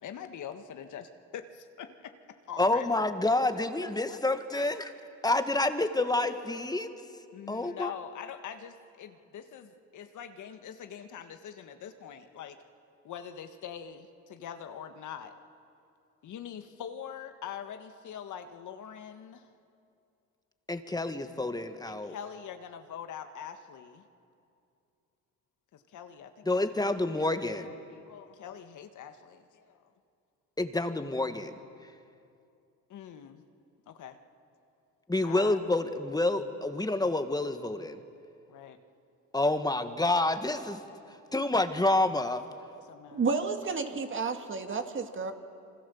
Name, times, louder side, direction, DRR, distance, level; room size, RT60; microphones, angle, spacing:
voice 1, 0.0-2.1 2.5-3.0 3.3-4.7 7.3-12.6 13.0-15.3 16.2-19.5 21.8-24.1 25.7-29.9 32.9-33.4 33.9-34.2 35.2-35.6 38.5-38.8 42.9-43.2, left 8 dB, 65° left, 7 dB, 1.6 m, -44 dB
voice 2, 2.6-4.9 5.2-6.9 7.5-7.9 20.7-22.1 26.4-27.7 30.6-31.6 35.1-38.0 39.3-40.8 41.3-42.4, left 2 dB, 10° left, 8 dB, 1.6 m, -28 dB
voice 3, 43.1-45.3, right 4 dB, 40° right, 6 dB, 2.1 m, -31 dB
27.0 x 24.0 x 7.1 m, 2.5 s
cardioid pair, 85°, 32 cm